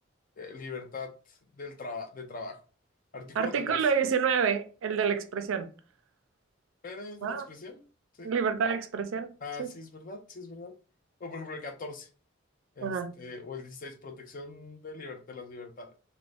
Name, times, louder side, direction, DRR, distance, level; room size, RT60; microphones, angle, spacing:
voice 1, 0.4-2.6 3.1-3.9 6.8-7.8 8.1-8.3 9.4-10.7 11.2-12.1 12.8-15.9, left 3 dB, 45° left, 0.4 m, -41 dB
voice 2, 3.4-5.7 7.2-7.4 8.2-9.7 12.8-13.1, right 6 dB, 75° right, 0.4 m, -28 dB
2.4 x 2.1 x 3.2 m
head